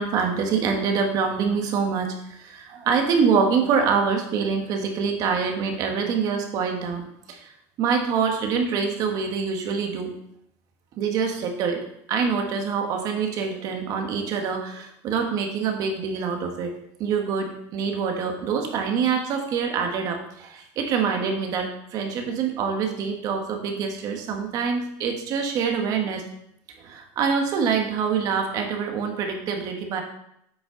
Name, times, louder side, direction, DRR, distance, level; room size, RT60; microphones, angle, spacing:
voice 1, 0.0-7.5 7.8-10.1 11.0-16.7 17.0-26.2 26.8-30.0, right 6 dB, 45° right, 4 dB, 1.5 m, -25 dB
8.8 x 6.1 x 4.0 m, 0.75 s
cardioid pair, 150°, 9 cm